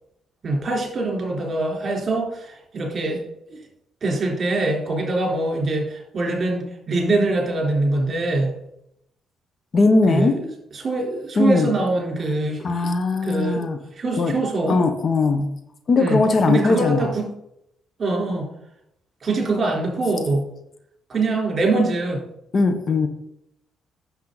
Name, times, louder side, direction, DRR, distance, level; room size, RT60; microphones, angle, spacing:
voice 1, 0.4-3.2 3.5-3.6 4.0-8.5 10.1-12.9 13.2-13.7 13.9-14.8 16.0-16.2 16.5-17.3 18.0-18.4 19.2-20.5 21.1-22.2, right 2 dB, 45° right, -1 dB, 3.8 m, -23 dB
voice 2, 9.7-10.4 11.4-11.7 12.6-13.8 14.2-14.3 14.7-15.5 15.9-17.1 22.5-23.1, left 3 dB, 45° left, 8 dB, 1.0 m, -19 dB
8.8 x 7.3 x 4.0 m, 0.78 s
cardioid pair, 90°, 0 cm